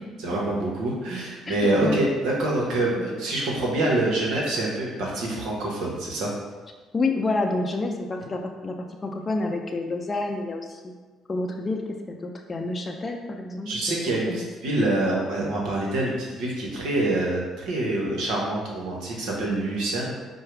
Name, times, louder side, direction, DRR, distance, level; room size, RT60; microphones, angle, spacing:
voice 1, 0.2-6.3 13.7-20.1, right 2 dB, 70° right, -3 dB, 1.1 m, -26 dB
voice 2, 1.5-2.0 3.0-3.1 6.9-10.9 11.3-13.7 14.3-14.5, left 2 dB, 30° left, 2 dB, 0.5 m, -29 dB
4.7 x 2.3 x 4.6 m, 1.3 s
hypercardioid pair, 50°, 0 cm